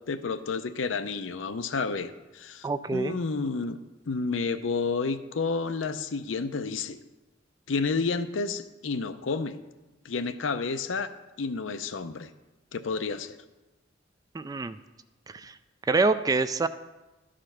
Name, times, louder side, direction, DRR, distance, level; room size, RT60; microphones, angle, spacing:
voice 1, 0.0-3.8 4.1-7.0 7.7-9.6 10.0-11.1 11.4-12.3 12.7-13.4, left 4 dB, 80° left, 10 dB, 0.6 m, -30 dB
voice 2, 2.6-3.2 14.3-14.8 15.3-15.5 15.9-16.7, right 3 dB, 20° right, 12 dB, 0.3 m, -26 dB
12.0 x 5.0 x 5.8 m, 1.1 s
head